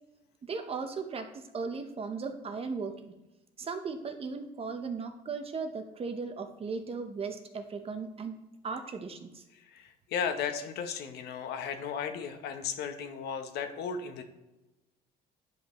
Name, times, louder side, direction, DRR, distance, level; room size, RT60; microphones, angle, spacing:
voice 1, 0.4-3.1 3.6-8.4 8.6-9.4, right 4 dB, 35° right, 7 dB, 0.9 m, -37 dB
voice 2, 9.5-14.2, left 7 dB, 75° left, 7 dB, 0.9 m, -35 dB
10.5 x 5.3 x 3.0 m, 0.99 s
cardioid pair, 110°, 17 cm